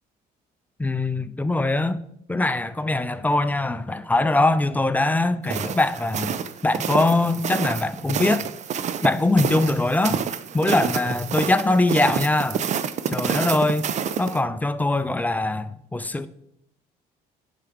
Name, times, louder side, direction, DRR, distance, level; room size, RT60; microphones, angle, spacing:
voice 1, 0.8-2.0 2.3-6.4 6.6-8.5 9.0-10.3 10.5-12.6 13.1-13.9 14.2-16.3, left 2 dB, 10° left, 0.4 m, -22 dB
sound 1, 5.5-14.4, right 7 dB, 45° right, 0.5 m, -28 dB
10.0 x 5.9 x 3.5 m
cardioid pair, 110°, 17 cm